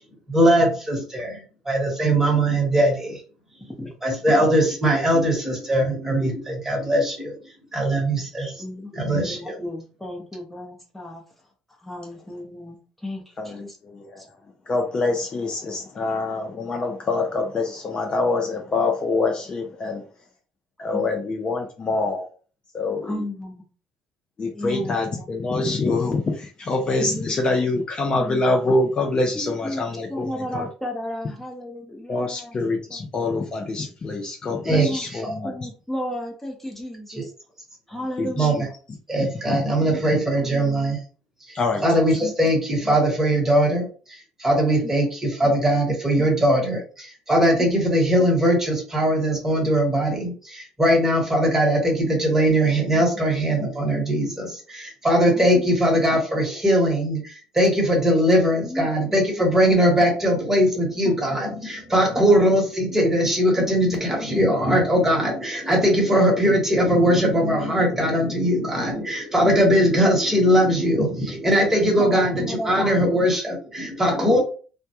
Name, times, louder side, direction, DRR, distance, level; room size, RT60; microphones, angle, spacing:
voice 1, 0.3-1.4 1.6-3.2 4.0-7.3 7.7-8.5 8.9-9.6 34.6-35.4 37.1-37.2 38.4-38.7 39.1-41.0 41.5-74.4, equal, 15° right, 1.1 m, -20 dB
voice 2, 8.4-8.9 9.2-11.2 11.8-13.8 14.2-14.3 20.9-21.1 23.0-23.7 24.5-25.3 27.0-27.4 28.1-28.4 29.3-29.8 30.1-32.6 32.9-33.1 34.7-35.0 35.4-37.3 37.9-38.7 40.4-40.9 42.2-42.3 44.8-44.9 47.6-47.7 52.9-53.0 55.3-55.8 58.6-59.1 61.0-61.1 62.2-62.3 63.6-63.7 66.5-66.6 68.8-69.0 72.0-73.1 74.1-74.4, left 1 dB, 10° left, 0.8 m, -34 dB
voice 3, 13.4-14.2 14.7-20.0 20.8-22.3 22.7-23.2 24.4-30.7 32.1-35.7 37.9-38.6 39.2-39.6 41.5-41.8, left 3 dB, 35° left, 0.5 m, -25 dB
2.1 x 2.1 x 2.8 m
supercardioid pair, 75°, 3 cm